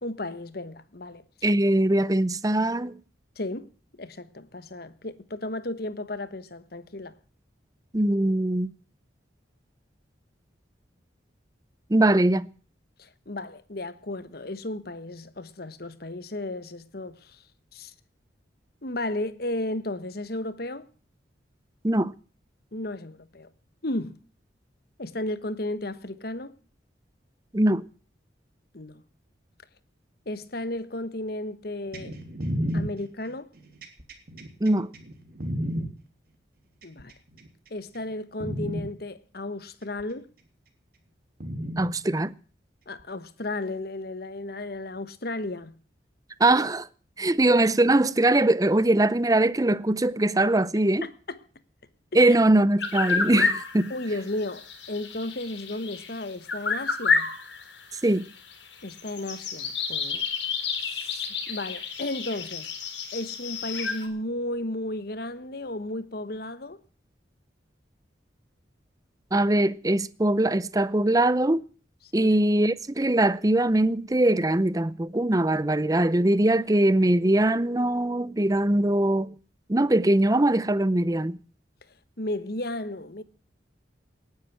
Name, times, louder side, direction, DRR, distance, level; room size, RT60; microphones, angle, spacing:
voice 1, 0.0-1.2 3.4-3.7 4.0-7.2 13.0-17.4 17.7-17.9 18.8-20.9 22.7-23.5 23.8-24.2 25.0-26.5 28.7-29.0 30.2-32.1 32.7-33.5 36.8-37.1 37.7-40.3 42.9-45.8 51.0-51.4 52.3-52.4 53.9-57.3 58.8-60.2 60.8-62.7 63.1-66.8 72.1-72.3 82.2-83.2, left 1 dB, 55° left, 1.3 m, -34 dB
voice 2, 1.4-2.9 7.9-8.7 11.9-12.5 21.8-22.1 27.5-27.8 34.6-34.9 41.8-42.3 46.4-46.9 47.2-51.1 52.1-53.9 58.0-58.3 69.3-71.6 72.1-79.3 79.7-81.4, right 1 dB, 20° right, 0.6 m, -22 dB
sound 1, 31.9-35.9 36.8-37.5 37.9-38.1 38.4-38.9 40.0-40.1 41.4-41.9 43.0-43.1, equal, 50° right, 3.1 m, -31 dB
sound 2, 52.8-64.1, left 5 dB, 75° left, 3.8 m, -30 dB
18.5 x 10.5 x 5.8 m
head